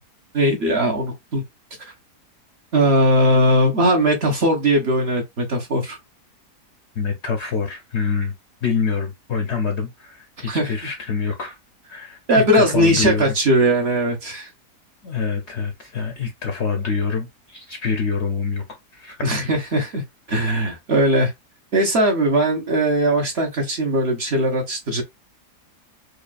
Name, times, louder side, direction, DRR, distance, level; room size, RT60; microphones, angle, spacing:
voice 1, 0.3-1.4 2.7-6.0 10.4-10.7 12.3-14.5 19.2-20.0 20.3-21.3 21.7-25.0, right 1 dB, 45° right, 1.1 m, -19 dB
voice 2, 7.0-8.3 8.6-11.6 11.9-13.3 15.0-18.6 18.9-19.2, left 5 dB, 60° left, 0.8 m, -25 dB
4.8 x 2.4 x 2.4 m
omnidirectional pair, 1.7 m